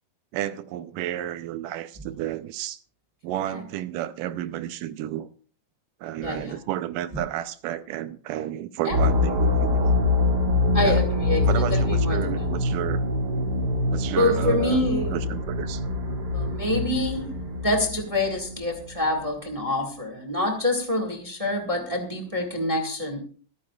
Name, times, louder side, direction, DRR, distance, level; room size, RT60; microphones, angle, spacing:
voice 1, 0.3-2.8 3.2-5.3 6.0-10.0 10.8-11.0 11.5-13.0 13.9-14.9 15.1-15.8, right 12 dB, 80° right, 2.2 m, -31 dB
voice 2, 6.2-6.6 8.8-9.1 10.7-12.5 14.1-15.2 16.3-23.2, left 2 dB, 20° right, 0.9 m, -26 dB
sound 1, 8.9-18.7, left 2 dB, 55° right, 1.1 m, -24 dB
25.5 x 9.4 x 2.4 m
omnidirectional pair, 3.9 m